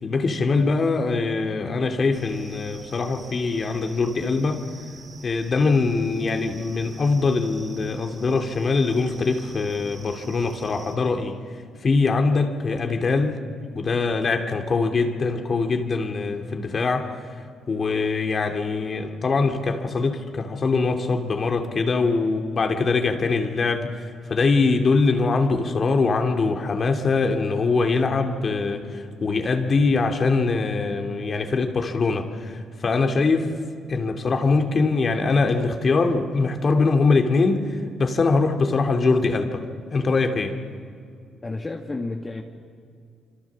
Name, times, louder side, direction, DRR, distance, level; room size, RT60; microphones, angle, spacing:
voice 1, 0.0-4.7 5.2-11.4 11.8-13.4 13.7-17.1 17.7-33.5 33.9-39.7 39.9-40.6, left 4 dB, 40° left, 2.6 m, -23 dB
sound 1, 2.1-11.0, right 3 dB, 35° right, 5.4 m, -46 dB
voice 2, 41.4-42.4, left 2 dB, 25° left, 1.9 m, -31 dB
27.5 x 25.5 x 7.4 m
cardioid pair, 90°, 0 cm